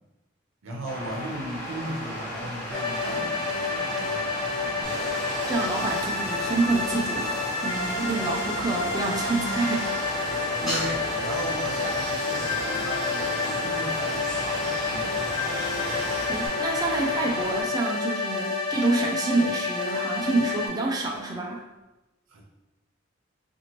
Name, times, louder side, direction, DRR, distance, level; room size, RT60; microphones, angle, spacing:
voice 1, 0.6-5.0 10.6-15.2 22.3-22.4, right 1 dB, 90° right, 0 dB, 0.6 m, -36 dB
sound 1, 0.8-17.6, left 1 dB, 40° left, 1.4 m, -37 dB
sound 2, 2.7-20.7, left 3 dB, 25° left, 0.6 m, -29 dB
Stream, 4.8-16.5, equal, ahead, 0.9 m, -36 dB
voice 2, 5.5-9.9 16.3-21.6, right 2 dB, 20° right, -1 dB, 0.3 m, -27 dB
2.9 x 2.5 x 2.9 m, 1.0 s
head